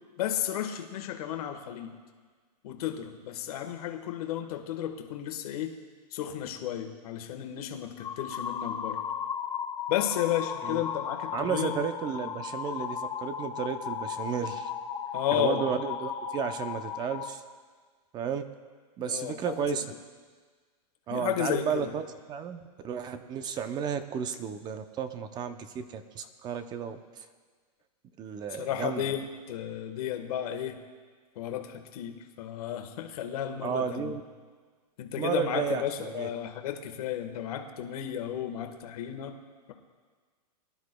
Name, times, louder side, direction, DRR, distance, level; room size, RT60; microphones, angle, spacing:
voice 1, 0.2-1.9 2.6-5.7 6.1-9.0 9.9-11.8 15.1-15.6 19.0-19.8 21.1-21.9 28.5-30.8 31.3-34.2 35.0-39.4, left 10 dB, 60° left, 5 dB, 1.4 m, -33 dB
sound 1, 8.0-17.3, left 7 dB, 20° left, 0.8 m, -35 dB
voice 2, 11.3-14.7 15.3-17.4 18.1-18.5 19.0-19.9 21.1-22.0 22.3-27.0 28.2-29.0 33.6-34.2 35.2-36.3, right 7 dB, 20° right, 9 dB, 0.5 m, -33 dB
22.5 x 11.5 x 2.2 m, 1.5 s
hypercardioid pair, 145°, 21 cm